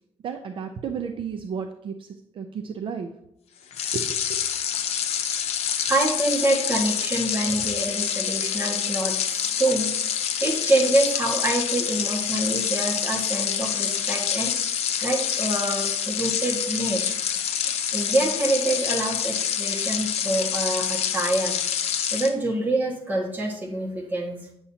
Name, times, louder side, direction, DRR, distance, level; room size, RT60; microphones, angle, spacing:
voice 1, 0.2-2.1 2.4-3.1 3.9-4.0, right 6 dB, 55° right, 6 dB, 0.5 m, -32 dB
sound 1, 3.7-22.3, left 8 dB, 90° left, 0.6 m, -27 dB
voice 2, 5.9-14.7 15.0-17.1 17.6-21.6 21.8-24.4, right 2 dB, 15° right, -3 dB, 1.7 m, -26 dB
8.9 x 7.1 x 2.8 m, 0.77 s
wide cardioid pair, 160°, 10 cm